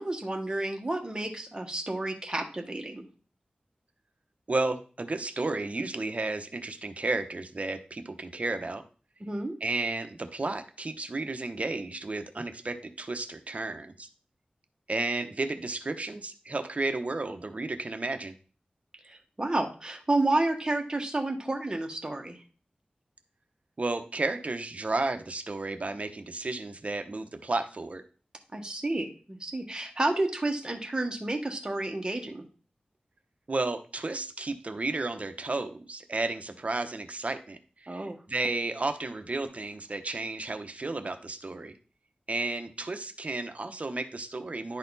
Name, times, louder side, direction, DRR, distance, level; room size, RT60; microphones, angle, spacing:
voice 1, 0.0-3.0 9.3-9.6 19.0-22.4 28.5-32.4 37.9-38.2, right 2 dB, 25° right, 3 dB, 1.5 m, -30 dB
voice 2, 4.5-8.8 9.6-14.1 14.9-18.3 23.8-28.0 33.5-41.7 42.3-44.8, right 2 dB, 50° right, 7 dB, 0.9 m, -32 dB
11.0 x 4.2 x 4.1 m, 0.39 s
wide cardioid pair, 70°, 3 cm